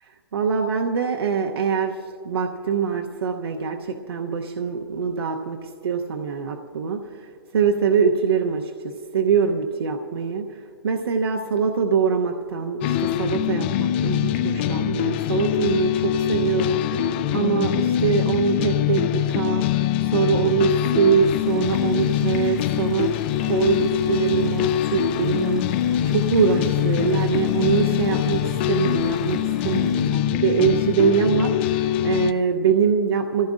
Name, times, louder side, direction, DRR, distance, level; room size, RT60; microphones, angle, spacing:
voice 1, 0.3-2.0 2.2-5.6 5.8-19.7 20.0-23.1 23.4-33.5, right 6 dB, 85° right, 3 dB, 0.9 m, -23 dB
sound 1, 12.8-32.3, left 12 dB, 25° left, 0.4 m, -23 dB
Car / Idling, 21.2-30.0, left 1 dB, ahead, 1.4 m, -45 dB
26.5 x 15.5 x 2.5 m, 2.2 s
hypercardioid pair, 160°, 13 cm